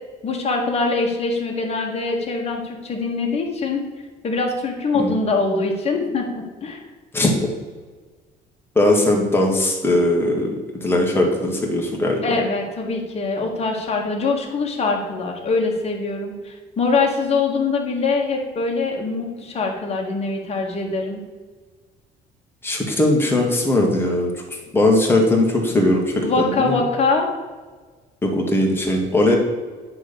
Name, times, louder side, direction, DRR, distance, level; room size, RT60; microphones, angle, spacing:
voice 1, 0.2-3.8 4.2-6.8 12.2-21.2 26.2-27.3, left 3 dB, 40° left, 1 dB, 1.9 m, -23 dB
voice 2, 8.8-10.5 10.8-12.4 22.6-24.3 24.7-26.8 28.2-29.4, left 1 dB, 15° left, -1 dB, 2.1 m, -19 dB
9.4 x 3.8 x 6.9 m, 1.4 s
cardioid pair, 110°, 17 cm